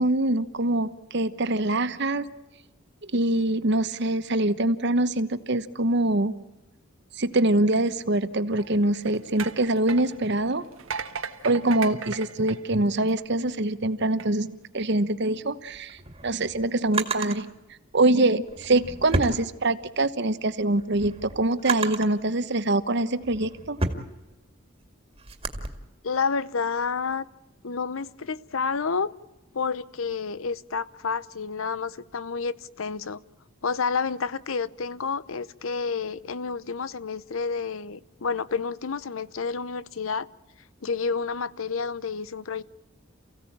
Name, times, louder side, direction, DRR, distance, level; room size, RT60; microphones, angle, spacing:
voice 1, 0.0-2.3 3.1-6.3 7.2-10.6 11.4-16.0 16.2-17.5 17.9-23.8, right 2 dB, 55° right, 1.1 m, -24 dB
sound 1, 8.5-13.5 14.0-14.3, right 6 dB, 85° right, 1.5 m, -37 dB
Drawer open or close, 15.7-17.4 18.4-20.1 20.5-22.2 22.8-25.7, right 3 dB, 25° right, 2.2 m, -32 dB
voice 2, 26.0-27.3 27.6-29.1 29.5-33.2 33.6-40.3 40.8-42.6, left 5 dB, 75° left, 0.8 m, -29 dB
28.5 x 16.0 x 8.7 m
head